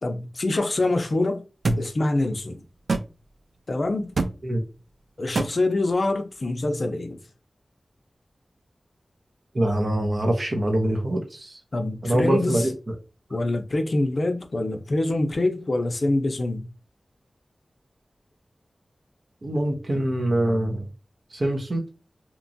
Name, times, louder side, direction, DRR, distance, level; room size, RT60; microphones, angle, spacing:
voice 1, 0.0-1.4 1.8-2.6 3.7-4.2 5.2-7.2 11.7-12.7 13.3-16.7, left 2 dB, 55° left, 0.4 m, -25 dB
sound 1, 1.6-1.8 2.9-3.1 4.2-4.3 5.4-5.5, right 3 dB, 85° right, 0.3 m, -23 dB
voice 2, 9.5-11.5 12.0-12.7 19.4-20.8 21.3-21.8, right 1 dB, 55° right, 0.6 m, -24 dB
2.8 x 2.2 x 2.6 m
wide cardioid pair, 85°, 0 cm